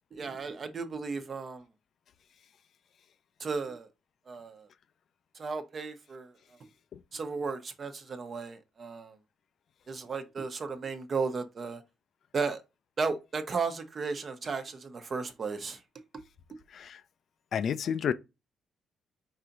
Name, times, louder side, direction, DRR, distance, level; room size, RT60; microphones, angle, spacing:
voice 1, 0.1-1.6 3.4-3.9 4.3-4.7 5.3-6.3 7.1-9.2 9.9-11.8 12.3-12.6 13.0-15.8, right 4 dB, 45° right, 1.0 m, -34 dB
voice 2, 17.5-18.1, left 8 dB, 60° left, 0.5 m, -30 dB
4.8 x 2.9 x 3.8 m
cardioid pair, 90°, 0 cm